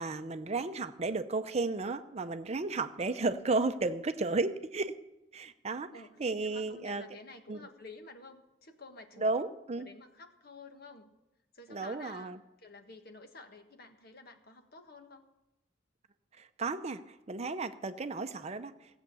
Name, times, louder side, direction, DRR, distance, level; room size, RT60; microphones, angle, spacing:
voice 1, 0.0-4.9 5.3-5.9 6.2-7.0 7.5-7.6 9.2-9.9 11.7-12.4 16.4-18.7, right 3 dB, 35° right, 10 dB, 0.6 m, -33 dB
voice 2, 5.9-9.3 9.8-11.1 11.5-12.3 12.6-15.3, left 3 dB, 55° left, 6 dB, 1.5 m, -51 dB
17.0 x 8.1 x 6.9 m, 1.0 s
head